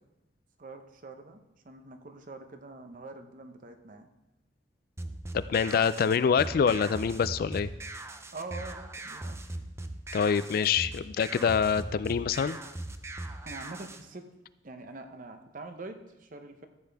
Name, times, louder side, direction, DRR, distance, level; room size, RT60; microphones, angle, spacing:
voice 1, 0.6-4.1 6.1-6.3 8.3-9.6 13.4-14.3 14.6-16.7, right 3 dB, 50° right, 7 dB, 0.8 m, -44 dB
sound 1, 5.0-14.0, right 2 dB, 15° right, 0.5 m, -40 dB
voice 2, 5.3-7.7 10.1-12.6, left 6 dB, 55° left, 14 dB, 0.3 m, -26 dB
13.5 x 7.6 x 3.4 m, 1.0 s
head